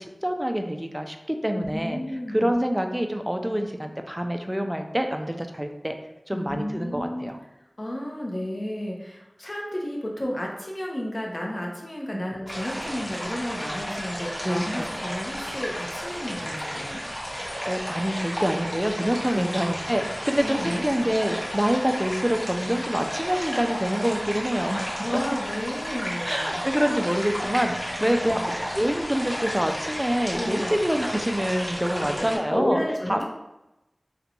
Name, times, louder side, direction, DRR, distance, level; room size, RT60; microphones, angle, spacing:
voice 1, 0.0-2.0 2.3-5.9 6.3-7.4 12.1-12.3 14.4-14.6 17.7-24.9 26.2-32.8 33.1-33.2, equal, 15° right, 4 dB, 0.4 m, -26 dB
voice 2, 1.6-2.5 6.3-7.3 7.8-17.0 19.3-19.5 20.4-20.8 25.0-26.6 28.0-28.5 30.3-30.7 32.0-33.2, equal, 55° left, -2 dB, 0.7 m, -32 dB
sound 1, 12.5-32.4, equal, 30° left, 1.0 m, -33 dB
3.9 x 2.2 x 2.8 m, 0.93 s
wide cardioid pair, 40°, 0 cm